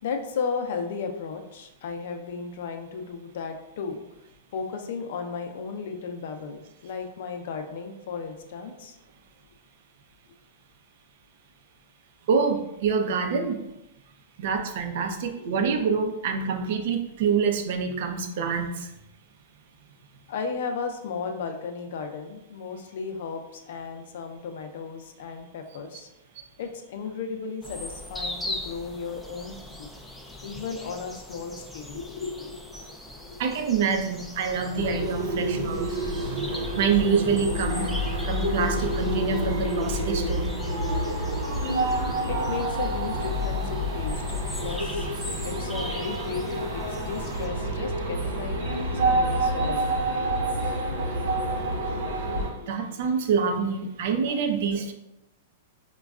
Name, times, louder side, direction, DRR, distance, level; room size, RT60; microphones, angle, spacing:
voice 1, 0.0-4.0 4.5-9.0 15.4-15.5 20.3-26.1 26.6-29.9 30.4-33.5 42.0-44.2 44.6-45.1 45.4-50.3 52.0-52.7, left 5 dB, 65° left, 5 dB, 0.5 m, -35 dB
voice 2, 12.3-13.6 14.4-18.9 33.4-35.8 36.2-37.8 38.3-40.5 52.7-54.9, right 5 dB, 60° right, 4 dB, 0.5 m, -26 dB
sound 1, 27.6-47.5, left 1 dB, 5° left, 0.3 m, -41 dB
sound 2, 34.7-52.5, right 1 dB, 85° right, 0.8 m, -28 dB
5.1 x 2.2 x 2.3 m, 0.90 s
hypercardioid pair, 150°, 0 cm